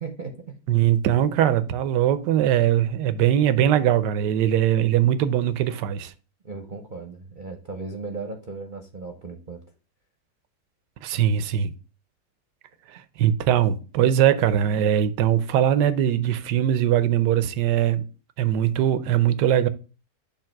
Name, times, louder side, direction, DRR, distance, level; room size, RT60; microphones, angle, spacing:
voice 1, 0.0-0.5 6.4-9.6, right 4 dB, 45° right, 0.7 m, -36 dB
voice 2, 0.7-6.1 11.0-11.7 12.9-18.0 18.4-19.7, right 10 dB, 90° right, 1.3 m, -21 dB
7.2 x 2.8 x 5.8 m
omnidirectional pair, 1.8 m